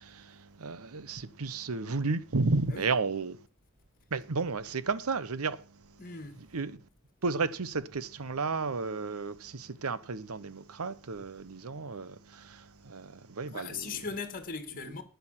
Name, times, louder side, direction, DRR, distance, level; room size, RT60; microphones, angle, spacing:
voice 1, 0.0-3.4 4.1-5.6 6.5-6.8 7.2-13.9, right 4 dB, 85° right, 0.8 m, -33 dB
voice 2, 6.0-6.5 13.5-15.0, left 4 dB, 40° left, 2.0 m, -39 dB
11.0 x 9.4 x 5.7 m
head